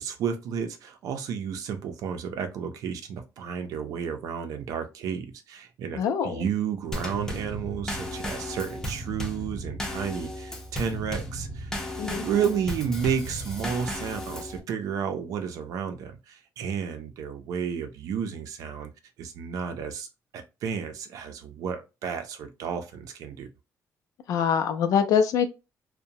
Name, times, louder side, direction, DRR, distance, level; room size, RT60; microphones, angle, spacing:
voice 1, 0.0-11.7 12.0-18.9 19.2-20.1 20.3-23.5, right 7 dB, 75° right, 0.5 m, -32 dB
voice 2, 5.9-6.4 12.0-12.3 24.3-25.5, left 7 dB, 75° left, 0.5 m, -24 dB
Drum kit / Snare drum / Bass drum, 6.9-14.6, equal, 10° left, 0.6 m, -34 dB
2.8 x 2.2 x 2.6 m
cardioid pair, 155°, 6 cm